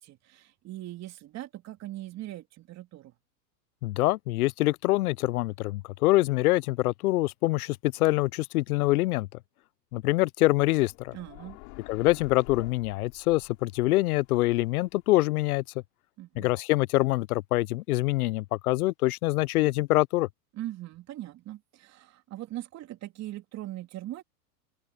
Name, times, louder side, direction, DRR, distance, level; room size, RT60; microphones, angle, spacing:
voice 1, 0.0-3.1 11.1-11.6 16.2-16.5 20.5-24.2, right 15 dB, 35° right, 3.2 m, -40 dB
voice 2, 3.8-9.3 9.9-11.2 11.9-15.6 16.4-20.3, left 19 dB, 65° left, 0.7 m, -25 dB
sound 1, 10.6-15.6, left 32 dB, 50° left, 4.0 m, -49 dB
open air
hypercardioid pair, 125°, 48 cm